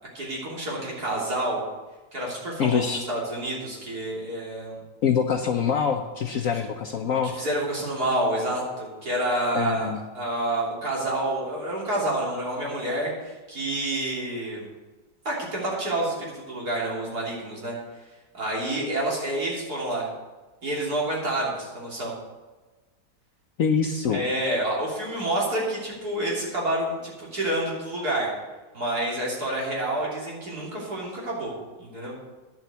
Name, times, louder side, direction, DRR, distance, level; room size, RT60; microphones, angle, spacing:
voice 1, 0.1-1.6 2.1-4.8 7.2-9.9 10.1-14.7 15.3-17.8 18.3-20.1 20.6-22.1 24.1-28.3 28.7-31.5 31.8-32.1, right 1 dB, 55° right, -4 dB, 3.8 m, -28 dB
voice 2, 2.6-3.1 5.0-7.4 9.5-10.0 23.6-24.2, left 7 dB, 60° left, 5 dB, 1.0 m, -25 dB
10.5 x 7.2 x 8.1 m, 1.2 s
omnidirectional pair, 2.0 m